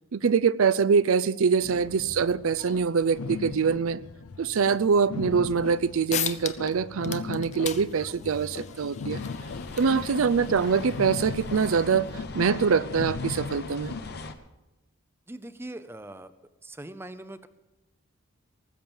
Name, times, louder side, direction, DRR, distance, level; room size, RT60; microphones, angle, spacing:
voice 1, 0.1-4.0 4.4-9.2 9.8-13.9, right 6 dB, 65° right, 16 dB, 0.4 m, -24 dB
sound 1, 1.6-14.2, left 5 dB, 75° left, 0.5 m, -38 dB
sound 2, 5.7-5.8 6.1-6.7 7.0-12.2, left 9 dB, 30° left, 0.6 m, -38 dB
sound 3, 9.1-14.3, left 3 dB, 45° left, 1.1 m, -40 dB
voice 2, 15.3-16.3 16.6-17.5, right 1 dB, 10° right, 12 dB, 0.5 m, -41 dB
19.0 x 7.5 x 7.0 m, 0.99 s
head